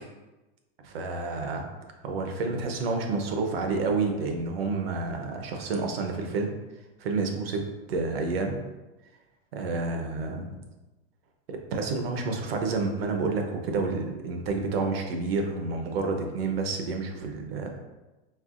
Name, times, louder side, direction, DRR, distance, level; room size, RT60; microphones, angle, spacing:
voice 1, 0.8-1.7 2.0-6.5 7.0-7.6 7.9-8.6 9.5-10.6 11.7-17.7, right 3 dB, 75° right, 3 dB, 0.8 m, -29 dB
4.6 x 3.6 x 2.5 m, 1.1 s
supercardioid pair, 175°, 30 cm